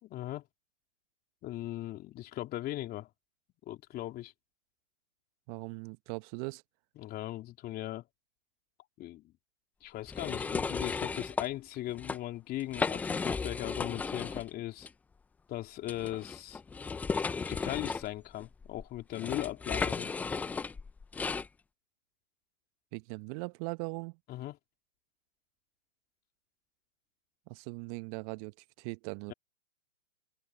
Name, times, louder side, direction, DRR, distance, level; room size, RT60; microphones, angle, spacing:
voice 1, 0.0-0.4 1.4-3.1 3.7-4.3 7.0-8.0 9.0-9.3 9.8-14.9 15.5-16.6 17.5-20.1 24.3-24.6, left 15 dB, 25° left, 3.4 m, -38 dB
voice 2, 5.5-6.6 22.9-24.2 27.5-29.3, right 28 dB, 30° right, 1.0 m, -40 dB
sound 1, 10.1-11.5 11.9-12.2 12.6-14.5 14.8-14.9 15.9-21.5, left 4 dB, 5° left, 0.5 m, -35 dB
open air
hypercardioid pair, 125°, 38 cm